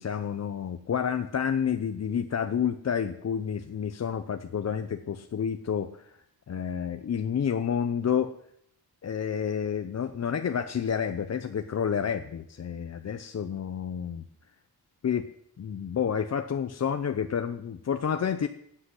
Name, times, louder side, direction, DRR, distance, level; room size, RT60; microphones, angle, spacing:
voice 1, 0.0-6.2 6.5-8.3 9.0-14.2 15.0-15.3 15.6-18.5, left 7 dB, 45° left, 9 dB, 0.7 m, -29 dB
12.0 x 7.9 x 9.9 m, 0.74 s
wide cardioid pair, 130°, 37 cm